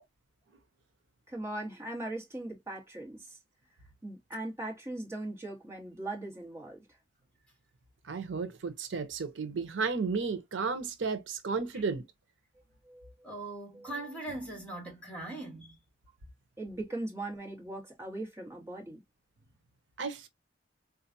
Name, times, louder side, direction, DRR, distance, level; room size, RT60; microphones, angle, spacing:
voice 1, 1.3-3.4 4.0-6.8 12.8-13.1 13.7-13.9 16.6-19.0, right 2 dB, 15° right, 1.3 m, -39 dB
voice 2, 8.0-12.0 20.0-20.3, right 4 dB, 85° right, 0.7 m, -33 dB
voice 3, 13.2-15.8, right 2 dB, 5° left, 1.7 m, -40 dB
3.8 x 2.4 x 2.6 m
head